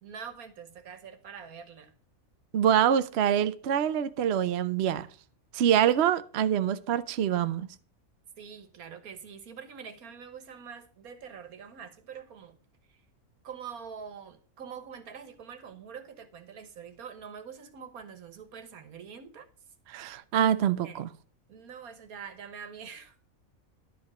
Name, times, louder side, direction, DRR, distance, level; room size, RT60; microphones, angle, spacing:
voice 1, 0.0-1.9 8.4-12.6 12.9-13.0 13.4-19.5 20.8-21.0 21.5-23.2, right 7 dB, 85° right, 1.7 m, -45 dB
voice 2, 2.5-5.1 5.5-7.7 19.9-21.1, right 9 dB, 60° right, 0.8 m, -25 dB
11.5 x 5.2 x 6.0 m
omnidirectional pair, 1.5 m